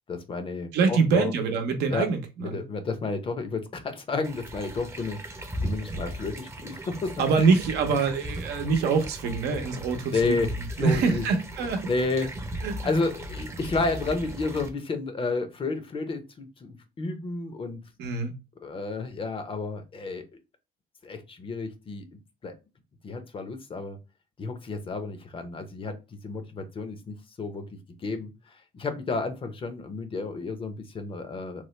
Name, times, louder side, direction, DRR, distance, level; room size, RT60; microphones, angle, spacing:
voice 1, 0.1-1.3 1.9-2.1 2.4-5.2 5.6-7.6 10.1-10.5 10.8-11.2 11.9-17.8 18.6-20.3 21.0-22.5 23.0-24.0 24.4-26.0 26.2-27.7 28.0-28.3 28.7-31.7, left 3 dB, 30° left, 0.6 m, -31 dB
voice 2, 0.7-2.6 7.2-11.9 12.6-12.9 18.0-18.3, right 5 dB, 80° right, 0.8 m, -25 dB
sound 1, 4.2-14.7, equal, 15° right, 0.6 m, -37 dB
3.1 x 2.0 x 3.1 m
cardioid pair, 110°, 17 cm